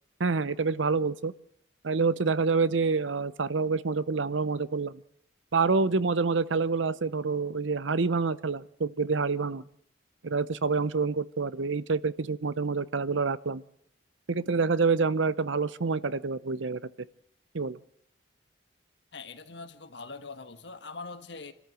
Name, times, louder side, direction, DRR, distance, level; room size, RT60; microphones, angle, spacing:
voice 1, 0.2-1.3 1.8-5.0 5.5-9.6 10.2-13.6 14.3-16.9 17.5-17.8, right 4 dB, 85° right, 0.8 m, -27 dB
voice 2, 19.1-21.5, left 4 dB, 65° left, 1.6 m, -42 dB
26.5 x 13.5 x 7.7 m
head